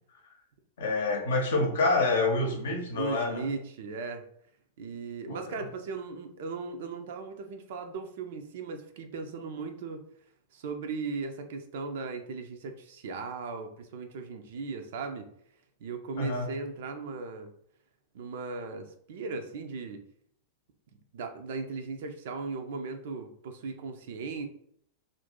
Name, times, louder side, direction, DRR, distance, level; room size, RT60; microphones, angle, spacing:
voice 1, 0.8-3.5 5.3-5.6 16.2-16.5, left 2 dB, 60° left, 3 dB, 0.7 m, -27 dB
voice 2, 2.9-4.2 4.8-10.0 10.5-15.3 15.8-17.5 18.1-20.0 21.1-24.5, right 4 dB, 55° right, 6 dB, 0.4 m, -37 dB
2.6 x 2.5 x 3.5 m, 0.66 s
figure-of-eight pair, 90°, 0 cm